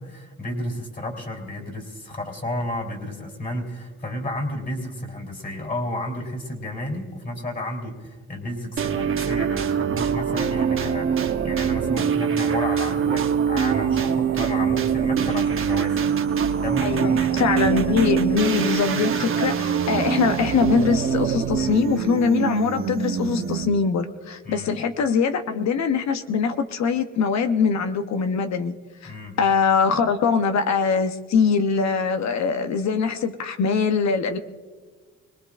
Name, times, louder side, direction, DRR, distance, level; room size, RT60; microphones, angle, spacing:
voice 1, 0.0-17.5 24.5-24.7 29.0-29.4, left 1 dB, 30° left, 2 dB, 3.7 m, -32 dB
sound 1, 8.8-23.9, right 7 dB, 45° right, 1.1 m, -24 dB
voice 2, 16.8-28.8 29.0-29.1 29.4-34.4, left 5 dB, 65° left, 8 dB, 0.9 m, -22 dB
24.5 x 19.0 x 2.5 m, 1.5 s
cardioid pair, 90°, 30 cm